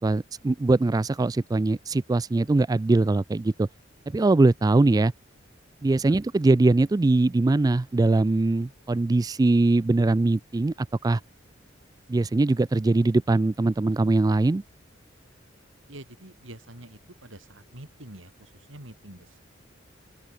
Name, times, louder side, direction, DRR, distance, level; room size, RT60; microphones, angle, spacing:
voice 1, 0.0-3.7 4.1-5.1 5.8-11.2 12.1-14.6, right 2 dB, 20° right, 0.3 m, -22 dB
voice 2, 15.9-19.4, right 1 dB, 80° right, 5.3 m, -46 dB
open air
head